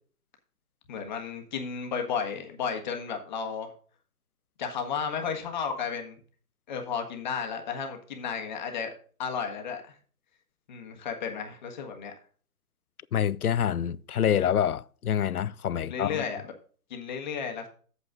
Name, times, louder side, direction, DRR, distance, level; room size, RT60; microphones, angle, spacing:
voice 1, 0.9-3.7 4.6-6.2 6.7-8.9 9.2-10.0 10.7-12.1 15.9-16.5 16.9-17.7, left 6 dB, 30° left, 1.5 m, -33 dB
voice 2, 13.1-16.2, left 9 dB, 70° left, 0.6 m, -26 dB
8.2 x 7.8 x 3.7 m
figure-of-eight pair, 145°, 46 cm